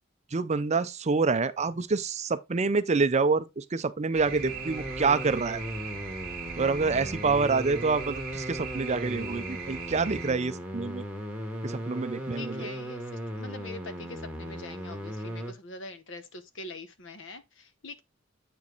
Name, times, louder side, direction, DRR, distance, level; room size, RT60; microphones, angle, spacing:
voice 1, 0.3-5.6 6.6-11.0 11.6-12.7, right 4 dB, 35° right, 0.5 m, -27 dB
sound 1, 4.1-15.5, equal, 5° right, 1.6 m, -37 dB
sound 2, 4.1-10.3, right 5 dB, 50° right, 1.4 m, -39 dB
voice 2, 4.3-5.0 6.8-7.4 12.3-18.0, left 2 dB, 70° left, 1.0 m, -44 dB
8.4 x 4.6 x 3.9 m
head